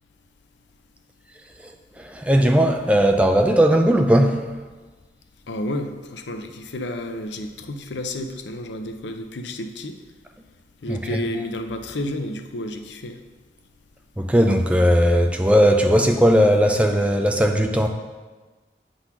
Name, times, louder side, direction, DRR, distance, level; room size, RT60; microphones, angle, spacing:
voice 1, 2.0-4.5 10.9-11.2 14.2-17.9, equal, 5° right, 4 dB, 0.4 m, -18 dB
voice 2, 5.5-10.0 10.8-13.2, left 1 dB, 90° left, 6 dB, 0.6 m, -31 dB
8.2 x 3.9 x 5.9 m, 1.3 s
head